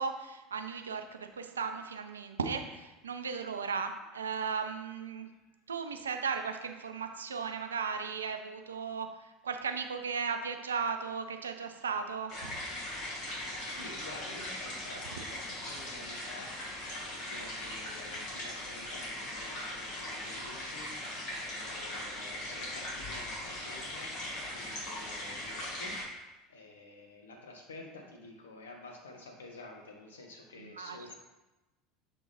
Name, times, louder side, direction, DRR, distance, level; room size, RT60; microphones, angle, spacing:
voice 1, 0.0-5.3 5.7-12.6 30.6-31.1, right 5 dB, 80° right, 6 dB, 0.5 m, -36 dB
sound 1, 12.3-26.0, left 1 dB, 50° left, 2.0 m, -39 dB
voice 2, 13.6-16.5 17.1-24.1 24.5-25.9 26.5-31.1, left 2 dB, 75° left, 2 dB, 1.1 m, -50 dB
6.9 x 3.6 x 4.1 m, 1.1 s
figure-of-eight pair, 75°, 0 cm